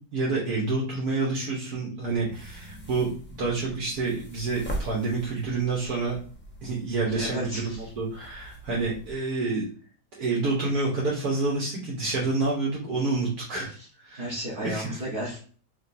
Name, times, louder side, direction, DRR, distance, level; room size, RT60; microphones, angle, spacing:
voice 1, 0.0-6.2 6.6-9.7 10.1-13.7 14.0-14.2 14.6-15.0, right 3 dB, 65° right, -4 dB, 1.6 m, -28 dB
sound 1, 2.1-9.1, right 1 dB, 10° left, 0.6 m, -41 dB
voice 2, 7.1-7.9 13.7-13.9 14.1-15.4, equal, 35° right, -6 dB, 1.3 m, -33 dB
5.1 x 3.0 x 2.6 m, 0.42 s
omnidirectional pair, 1.7 m